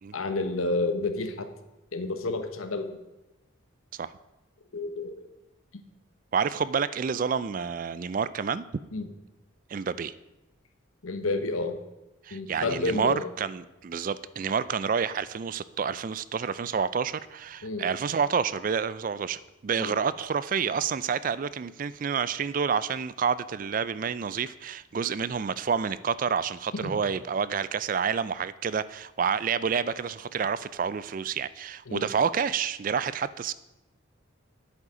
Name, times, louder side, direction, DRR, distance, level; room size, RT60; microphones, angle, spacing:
voice 1, 0.1-1.5 1.9-2.9 4.7-5.2 8.9-9.1 11.0-11.8 12.3-13.3 17.6-17.9 19.8-19.9 26.8-27.0 31.9-32.1, left 2 dB, 85° left, 9 dB, 1.0 m, -30 dB
voice 2, 6.3-8.6 9.7-10.1 12.2-33.5, right 6 dB, 40° right, 16 dB, 0.3 m, -29 dB
10.0 x 8.0 x 5.0 m, 0.97 s
head